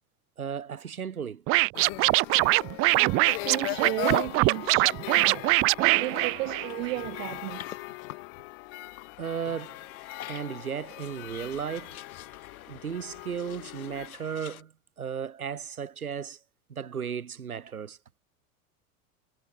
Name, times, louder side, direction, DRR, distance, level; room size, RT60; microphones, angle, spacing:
voice 1, 0.4-1.4 9.2-9.8 10.3-12.0 12.7-16.4 16.7-18.0, right 7 dB, 90° right, 3.1 m, -35 dB
Scratching (performance technique), 1.5-7.0, right 25 dB, 35° right, 0.4 m, -23 dB
sound 1, 1.7-14.1, left 30 dB, 60° left, 1.5 m, -39 dB
voice 2, 2.9-5.6 5.9-7.8, right 21 dB, 65° right, 1.1 m, -35 dB
sound 2, 5.9-14.6, left 11 dB, 80° left, 2.5 m, -48 dB
hypercardioid pair, 90°, 42 cm